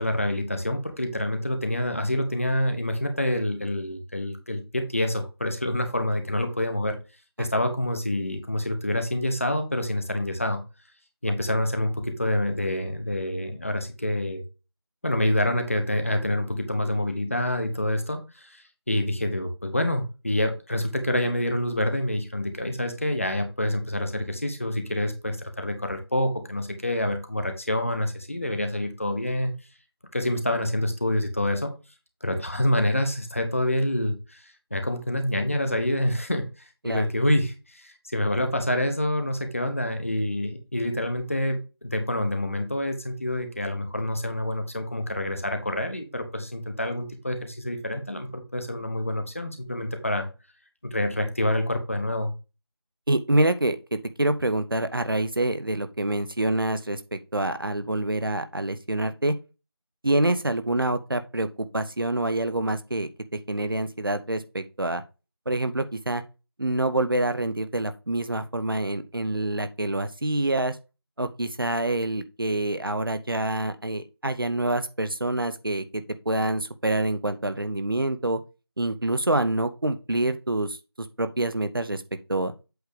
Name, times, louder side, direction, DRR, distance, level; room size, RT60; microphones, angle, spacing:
voice 1, 0.0-7.0 7.4-10.6 11.2-14.4 15.0-18.6 18.9-29.5 30.1-31.7 32.2-36.5 36.8-50.3 50.8-52.3, left 1 dB, 30° left, 1.1 m, -27 dB
voice 2, 53.1-59.4 60.0-65.0 65.5-66.2 66.6-70.8 71.2-78.4 78.8-82.0 82.3-82.5, right 1 dB, 55° right, 0.8 m, -26 dB
8.1 x 3.3 x 4.9 m
figure-of-eight pair, 175°, 14 cm